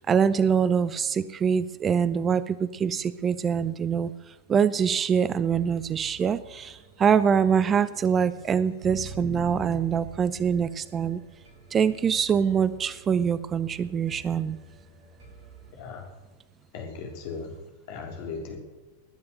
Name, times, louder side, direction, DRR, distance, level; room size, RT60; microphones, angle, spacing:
voice 1, 0.0-4.1 4.5-11.2 11.7-14.6, right 7 dB, 25° right, 17 dB, 0.6 m, -24 dB
sound 1, 5.5-15.7, right 2 dB, 55° right, 6.1 m, -46 dB
voice 2, 16.7-17.5 17.9-18.6, left 5 dB, 50° left, 3 dB, 3.5 m, -37 dB
21.0 x 9.5 x 6.6 m, 1.2 s
figure-of-eight pair, 90°, 0 cm